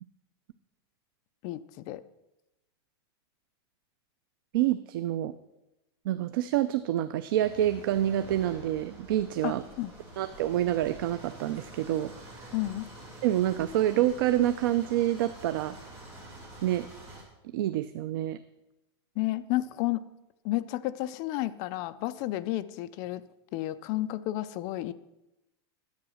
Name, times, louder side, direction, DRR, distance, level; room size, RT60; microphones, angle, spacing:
voice 1, 1.4-2.0 9.4-9.9 12.5-12.9 19.2-20.0 20.4-23.2 23.5-24.9, left 16 dB, 25° left, 13 dB, 0.3 m, -31 dB
voice 2, 4.5-5.3 6.1-9.6 10.2-12.1 12.4-12.5 13.2-15.8 16.6-16.9 17.5-18.4, right 12 dB, 55° right, 12 dB, 0.5 m, -27 dB
sound 1, 7.3-17.2, right 1 dB, 20° right, 2.5 m, -47 dB
10.5 x 8.3 x 6.3 m, 0.93 s
supercardioid pair, 180°, 14 cm